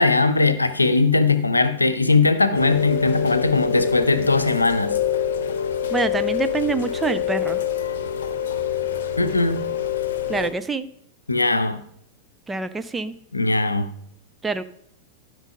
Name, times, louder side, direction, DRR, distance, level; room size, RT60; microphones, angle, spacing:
voice 1, 0.0-4.9 9.2-9.7 11.3-11.8 13.3-13.9, left 3 dB, 80° left, 0.6 m, -19 dB
Rain, 2.5-10.5, left 8 dB, 60° left, 0.9 m, -25 dB
voice 2, 5.9-7.6 10.3-10.9 12.5-13.1 14.4-14.6, right 4 dB, 10° right, 0.5 m, -25 dB
12.0 x 5.2 x 5.0 m
figure-of-eight pair, 90°, 0 cm